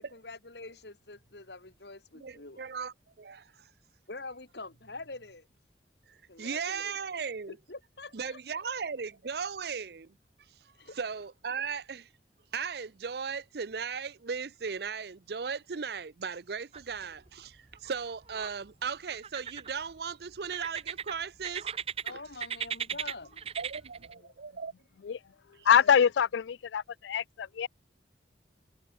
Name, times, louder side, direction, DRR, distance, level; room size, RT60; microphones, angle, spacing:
voice 1, 0.0-2.6 4.1-5.5 6.3-7.2 7.5-8.4 10.8-11.0 22.0-23.3, left 3 dB, 70° left, 2.3 m, -45 dB
voice 2, 2.1-3.7 6.1-7.6 8.1-10.1 10.9-12.1 12.5-21.7 22.1-22.2 23.6-24.7 25.6-25.7, right 6 dB, 60° right, 0.6 m, -37 dB
sound 1, 16.7-17.3 17.6-18.5 19.1-20.0 20.5-22.1 22.4-24.1, right 7 dB, 35° right, 0.9 m, -37 dB
voice 3, 25.7-27.7, left 7 dB, 85° left, 0.4 m, -24 dB
head